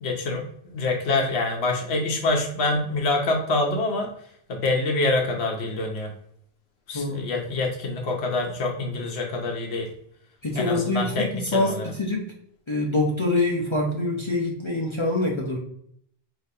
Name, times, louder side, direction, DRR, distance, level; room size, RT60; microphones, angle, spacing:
voice 1, 0.0-4.1 4.5-6.1 6.9-9.9 10.6-11.9, left 2 dB, 90° left, 1 dB, 1.0 m, -26 dB
voice 2, 10.4-12.2 12.7-15.6, left 2 dB, 30° left, -2 dB, 0.7 m, -25 dB
5.1 x 2.8 x 2.7 m, 0.67 s
omnidirectional pair, 1.0 m